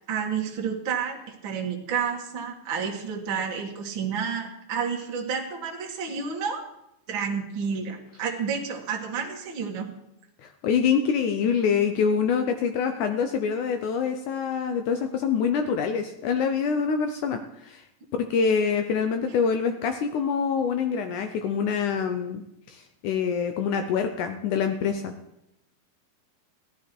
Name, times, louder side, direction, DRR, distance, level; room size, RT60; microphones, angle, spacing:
voice 1, 0.1-6.6 7.1-9.9 19.3-19.4, right 6 dB, 45° right, 0 dB, 2.0 m, -30 dB
voice 2, 10.4-17.8 18.2-22.4 22.7-25.1, left 6 dB, 75° left, 7 dB, 2.0 m, -25 dB
16.0 x 11.5 x 4.5 m, 0.83 s
omnidirectional pair, 4.2 m